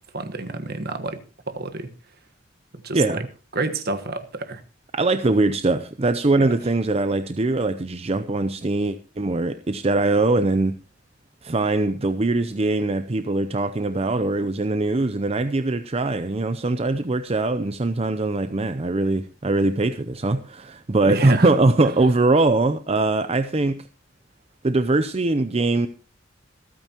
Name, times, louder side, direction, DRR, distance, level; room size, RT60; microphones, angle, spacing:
voice 1, 0.1-1.2 1.5-1.9 2.8-3.2 3.5-4.6 6.4-6.5 21.0-21.5, right 3 dB, 55° right, 1.4 m, -29 dB
voice 2, 2.9-3.3 4.9-10.7 11.4-23.8 24.6-25.9, right 2 dB, 30° right, 0.6 m, -22 dB
26.0 x 9.1 x 3.0 m
head